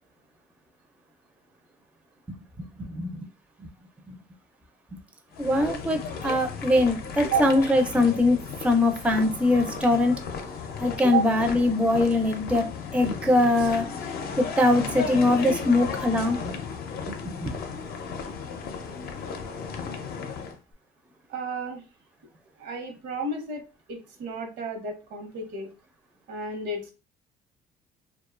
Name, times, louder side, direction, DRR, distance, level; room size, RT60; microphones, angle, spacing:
sound 1, 5.3-20.6, left 5 dB, 65° left, 0.5 m, -35 dB
voice 1, 5.4-10.2 10.8-12.7 12.9-13.8 14.4-16.5 17.1-17.2 17.4-17.6, left 2 dB, 5° right, 6 dB, 0.4 m, -22 dB
voice 2, 21.3-21.8 22.6-23.6 23.9-25.7 26.3-26.9, right 4 dB, 85° right, 5 dB, 0.8 m, -31 dB
2.5 x 2.2 x 2.3 m, 0.30 s
cardioid pair, 110°, 17 cm